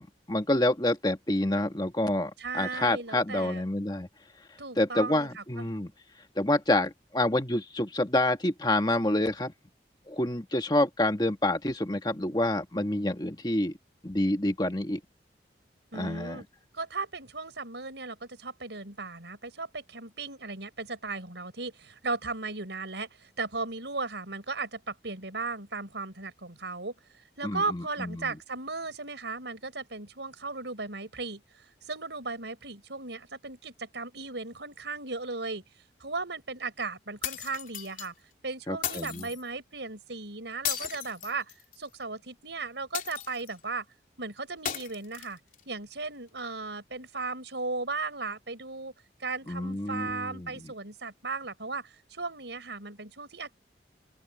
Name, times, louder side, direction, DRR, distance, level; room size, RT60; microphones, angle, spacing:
voice 1, 0.0-4.1 4.8-5.9 6.3-9.5 10.1-13.7 14.0-15.0 15.9-16.4 27.4-28.3 38.7-39.3 49.5-50.7, left 1 dB, 25° left, 1.6 m, -28 dB
voice 2, 2.4-3.6 4.6-5.7 15.9-16.4 16.7-26.9 27.4-35.6 36.0-38.1 38.4-43.8 44.2-45.4 45.7-48.9 49.2-53.5, right 3 dB, 75° right, 4.8 m, -36 dB
sound 1, 37.2-38.1 38.8-39.4 40.6-41.9 42.9-43.6 44.7-45.6, left 9 dB, 45° left, 3.6 m, -35 dB
open air
head